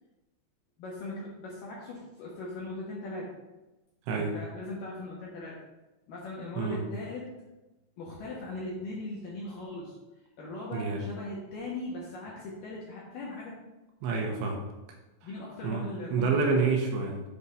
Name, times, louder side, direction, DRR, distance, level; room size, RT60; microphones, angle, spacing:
voice 1, 0.8-3.3 4.1-5.6 6.1-7.3 8.0-10.0 10.4-13.6 15.2-16.7, left 2 dB, 75° left, -4 dB, 2.0 m, -39 dB
voice 2, 10.7-11.0 14.0-14.6 15.6-17.2, right 4 dB, 75° right, 1 dB, 2.7 m, -28 dB
8.2 x 3.6 x 5.4 m, 1.1 s
omnidirectional pair, 5.4 m